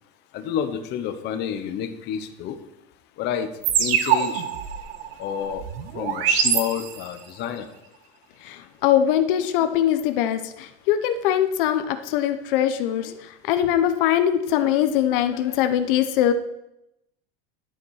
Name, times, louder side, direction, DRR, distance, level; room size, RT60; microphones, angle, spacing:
voice 1, 0.3-2.5 3.2-3.5 3.8-4.4 5.2-5.6 5.9-7.7, left 9 dB, 35° left, 8 dB, 0.9 m, -29 dB
sound 1, 3.6-7.3, right 9 dB, 85° right, 1.3 m, -24 dB
voice 2, 8.4-16.3, left 10 dB, 65° left, 9 dB, 0.8 m, -22 dB
11.0 x 7.0 x 4.8 m, 0.87 s
supercardioid pair, 160°, 29 cm